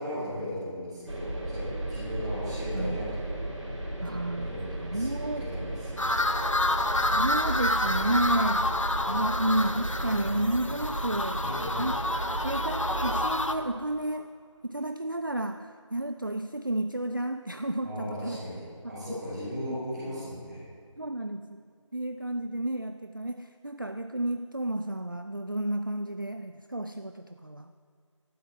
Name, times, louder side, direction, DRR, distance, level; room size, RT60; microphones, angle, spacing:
voice 1, 0.0-3.3 4.4-6.1 11.4-11.8 17.8-20.6, equal, ahead, -18 dB, 3.3 m, -37 dB
sound 1, 1.1-13.3, right 1 dB, 70° right, 3.5 m, -34 dB
voice 2, 4.0-4.5 4.8-5.5 7.0-8.7 9.0-11.4 11.8-11.9 12.4-14.3 14.6-18.4 18.8-19.2 19.7-19.8 21.0-21.7 21.9-27.7, right 1 dB, 40° right, 8 dB, 0.4 m, -31 dB
sound 2, 6.0-13.5, left 1 dB, 75° left, 1.1 m, -29 dB
18.0 x 13.0 x 4.0 m, 2.2 s
figure-of-eight pair, 170°, 17 cm